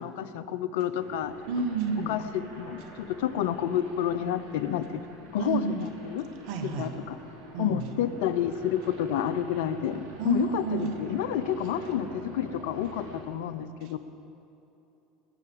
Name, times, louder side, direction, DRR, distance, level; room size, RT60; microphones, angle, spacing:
voice 1, 0.0-1.3 2.1-6.3 6.6-7.2 7.6-14.0, left 10 dB, 75° left, 12 dB, 0.8 m, -30 dB
sound 1, 1.0-13.2, equal, 85° right, 3.7 m, -46 dB
voice 2, 1.5-2.2 5.4-5.9 6.4-6.9 7.5-7.9 10.2-10.9, right 4 dB, 65° right, 6 dB, 1.5 m, -30 dB
20.5 x 7.0 x 8.7 m, 2.9 s
hypercardioid pair, 85°, 0 cm